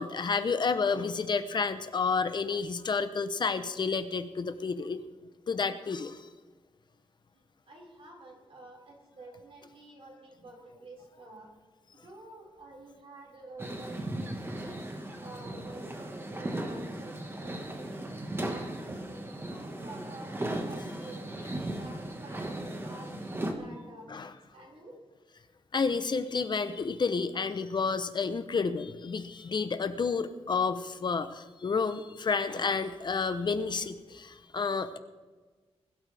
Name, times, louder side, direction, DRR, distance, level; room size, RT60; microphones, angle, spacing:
voice 1, 0.0-5.0 5.5-6.2 24.1-24.3 25.7-35.0, left 5 dB, 45° left, 10 dB, 0.8 m, -30 dB
voice 2, 7.7-11.5 11.9-14.8 15.2-18.1 18.5-24.1 24.5-25.0, right 2 dB, 60° right, -2 dB, 5.2 m, -50 dB
sound 1, 13.6-23.5, right 1 dB, 20° right, 1.6 m, -37 dB
21.0 x 12.5 x 3.4 m, 1.3 s
wide cardioid pair, 145°, 11 cm